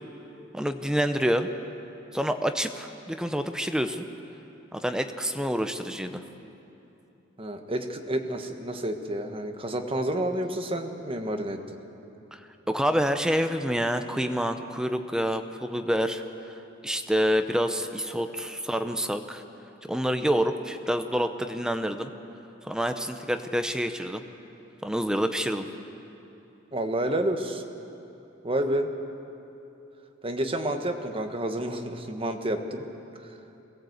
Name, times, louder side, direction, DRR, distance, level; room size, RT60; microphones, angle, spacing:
voice 1, 0.5-1.5 2.1-4.1 4.7-6.2 12.3-12.4 12.7-16.2 16.8-19.4 19.9-22.1 22.6-24.2 24.8-25.7, equal, 5° right, 7 dB, 0.7 m, -27 dB
voice 2, 7.4-11.6 26.7-27.6 28.4-28.9 30.2-32.8, right 1 dB, 30° right, 5 dB, 1.3 m, -29 dB
22.0 x 17.0 x 8.0 m, 2.9 s
head